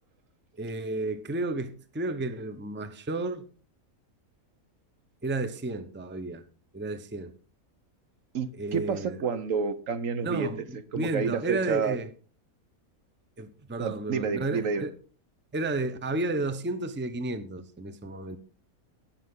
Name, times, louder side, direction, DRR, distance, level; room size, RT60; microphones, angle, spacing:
voice 1, 0.6-3.4 5.2-6.4 6.7-7.3 8.6-9.2 10.2-12.1 13.4-14.9 15.5-18.4, right 2 dB, 10° right, 0.7 m, -32 dB
voice 2, 8.3-10.5 10.9-12.0 13.8-14.8, right 5 dB, 65° right, 1.2 m, -29 dB
19.0 x 6.7 x 3.7 m
omnidirectional pair, 1.5 m